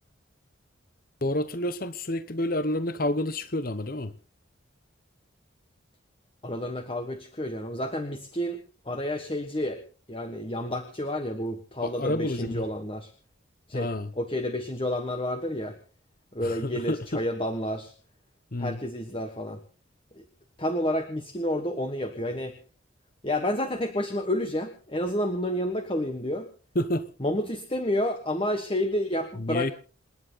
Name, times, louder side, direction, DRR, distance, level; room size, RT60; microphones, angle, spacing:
voice 1, 1.2-4.1 11.8-12.6 13.7-14.1 16.4-17.2 18.5-18.8 26.7-27.0 29.4-29.7, left 1 dB, 45° left, 1.0 m, -29 dB
voice 2, 6.4-9.8 10.1-13.1 13.7-13.9 14.1-15.8 16.3-17.9 18.6-19.6 20.1-20.2 20.6-22.6 23.2-26.5 27.2-29.7, left 1 dB, 25° left, 1.5 m, -30 dB
28.0 x 10.5 x 4.0 m
head